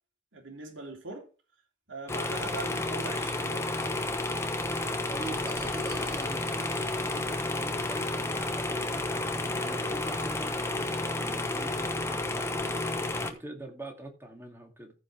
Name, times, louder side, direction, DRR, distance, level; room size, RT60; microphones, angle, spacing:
voice 1, 0.3-1.3 1.9-3.9, right 3 dB, 80° right, 3.0 m, -41 dB
sound 1, 2.1-13.3, left 2 dB, 15° left, 1.1 m, -31 dB
sound 2, 4.4-9.3 10.3-10.4 10.6-11.2, right 2 dB, 60° right, 5.1 m, -53 dB
voice 2, 5.1-9.2 9.6-13.0 13.3-14.9, right 1 dB, 15° right, 2.3 m, -44 dB
14.5 x 5.3 x 4.7 m
head